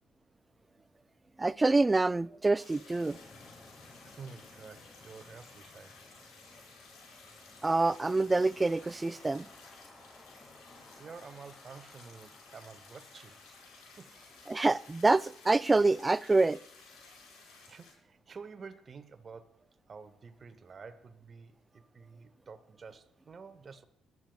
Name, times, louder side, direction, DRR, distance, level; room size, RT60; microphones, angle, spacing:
voice 1, 1.4-3.2 7.6-9.5 14.5-16.6, right 3 dB, 25° right, 0.3 m, -26 dB
sound 1, 2.6-17.9, left 4 dB, 80° left, 4.4 m, -55 dB
sound 2, 3.1-15.0, left 2 dB, 30° left, 2.5 m, -58 dB
voice 2, 4.0-6.0 11.0-13.4 14.0-14.1 17.7-19.6 19.9-23.9, right 5 dB, 45° right, 1.0 m, -50 dB
19.0 x 12.0 x 2.3 m
supercardioid pair, 55°, 0 cm